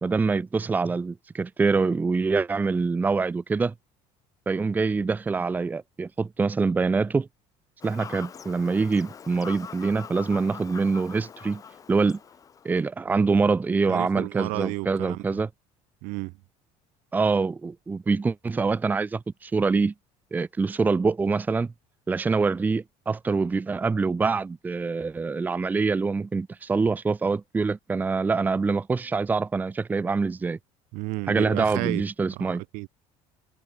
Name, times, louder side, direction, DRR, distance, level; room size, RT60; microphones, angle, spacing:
voice 1, 0.0-3.7 4.5-7.3 7.8-11.6 11.9-12.2 12.6-15.5 17.1-19.9 20.3-21.7 22.1-30.6 31.3-32.6, right 4 dB, 15° right, 0.9 m, -25 dB
Fowl / Bird vocalization bird call bird song, 7.8-12.8, left 7 dB, 25° left, 3.8 m, -43 dB
voice 2, 13.9-15.4 16.0-16.3 30.9-32.0 32.3-32.9, right 26 dB, 75° right, 3.2 m, -32 dB
cardioid pair, 165°, 14 cm